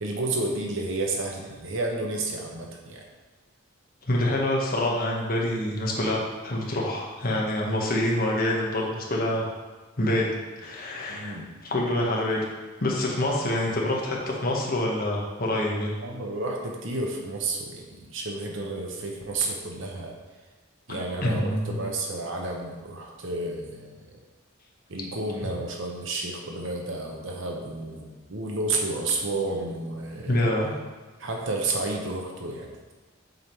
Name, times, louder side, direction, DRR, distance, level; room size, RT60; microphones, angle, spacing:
voice 1, 0.0-3.0 11.1-11.5 16.0-20.1 20.9-24.2 24.9-30.5 31.2-32.7, right 2 dB, 65° right, 0 dB, 0.9 m, -31 dB
voice 2, 4.1-9.5 10.0-10.3 10.6-11.4 11.6-12.4 12.8-15.9 21.2-21.8 30.3-30.7, left 1 dB, 45° left, -2 dB, 1.3 m, -26 dB
7.8 x 3.7 x 4.5 m, 1.3 s
head